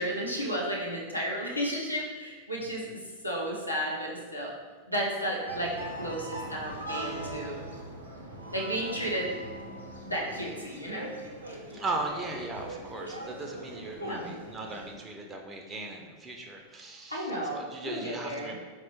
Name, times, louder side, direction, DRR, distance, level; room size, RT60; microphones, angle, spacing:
voice 1, 0.0-4.5 4.9-7.6 8.5-9.3 10.0-11.1 11.5-11.6 14.0-14.3 17.1-18.5, equal, 85° left, -2 dB, 0.6 m, -33 dB
sound 1, 5.5-14.9, right 1 dB, 75° right, 0.5 m, -41 dB
voice 2, 11.7-18.5, right 2 dB, 15° right, 1 dB, 0.4 m, -38 dB
4.2 x 2.1 x 2.9 m, 1.4 s
figure-of-eight pair, 90°, 0 cm